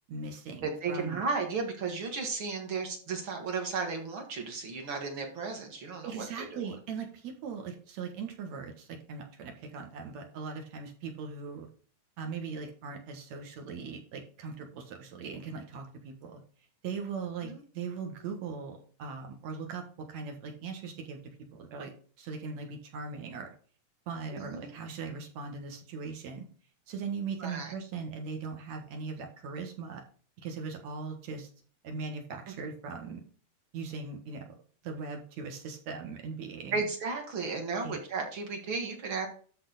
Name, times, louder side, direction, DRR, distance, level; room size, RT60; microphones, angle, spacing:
voice 1, 0.1-1.2 6.0-11.7 12.2-16.4 16.8-21.2 21.5-21.9 22.2-23.5 24.1-26.4 26.9-30.0 30.4-31.5 31.8-33.2 33.7-34.5 34.8-36.8 37.8-38.0, right 5 dB, 70° right, 3 dB, 2.8 m, -39 dB
voice 2, 0.6-6.7 17.4-17.6 24.3-24.7 27.4-27.7 36.7-39.3, right 4 dB, 45° right, 2 dB, 2.4 m, -34 dB
12.5 x 4.4 x 4.1 m, 0.42 s
omnidirectional pair, 3.3 m